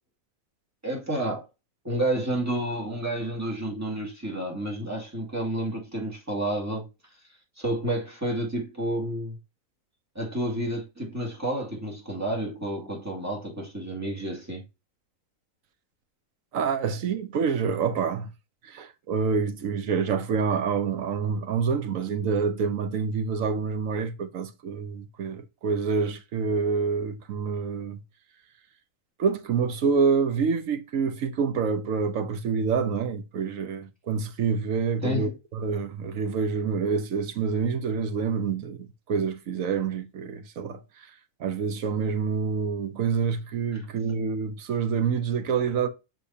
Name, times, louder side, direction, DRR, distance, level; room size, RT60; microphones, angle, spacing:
voice 1, 0.8-1.5 1.8-6.9 7.6-9.4 10.1-14.6 35.0-35.3, right 1 dB, 10° right, 2.2 m, -30 dB
voice 2, 16.5-18.3 18.6-28.0 29.2-41.1 41.4-45.9, right 5 dB, 65° right, 1.2 m, -27 dB
6.7 x 6.1 x 2.8 m
omnidirectional pair, 1.6 m